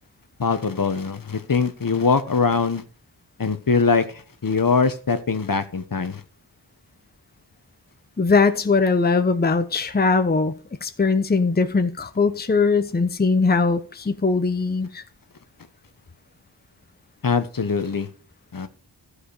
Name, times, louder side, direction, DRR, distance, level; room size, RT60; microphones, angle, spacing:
voice 1, 0.4-2.8 3.4-6.2 17.2-18.1 18.5-18.7, left 5 dB, 50° left, 1.0 m, -22 dB
voice 2, 8.2-10.5 10.8-15.0, left 4 dB, 20° left, 0.7 m, -20 dB
13.0 x 5.0 x 5.0 m
wide cardioid pair, 45°, 42 cm